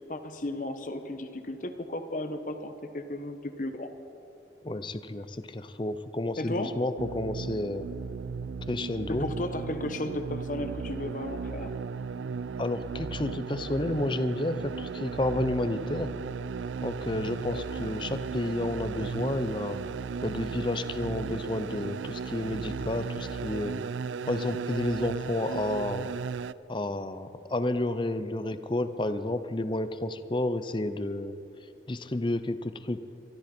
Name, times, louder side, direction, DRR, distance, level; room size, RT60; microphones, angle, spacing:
voice 1, 0.1-3.9 6.4-6.8 9.1-11.7 17.5-17.6, left 1 dB, 45° left, 8 dB, 1.1 m, -34 dB
voice 2, 4.6-7.9 8.7-9.3 12.6-16.1 16.8-19.8 20.2-23.7 24.3-26.1 26.7-31.4 31.9-33.2, left 1 dB, 25° left, 11 dB, 0.6 m, -31 dB
sound 1, 7.0-26.5, right 5 dB, 90° right, 0.4 m, -36 dB
24.0 x 13.0 x 4.4 m, 2.7 s
head